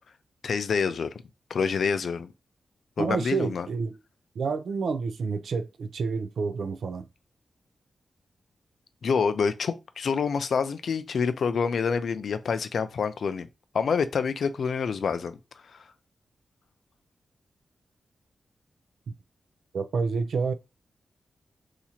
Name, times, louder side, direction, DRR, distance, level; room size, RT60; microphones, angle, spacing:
voice 1, 0.4-1.1 1.5-2.3 3.0-3.7 9.0-13.5 13.7-15.4 15.7-15.8, left 5 dB, 70° left, 0.4 m, -27 dB
voice 2, 3.0-3.9 4.4-7.1 19.1-19.2 19.7-20.5, right 4 dB, 75° right, 0.4 m, -29 dB
2.8 x 2.4 x 4.2 m
wide cardioid pair, 160°, 0 cm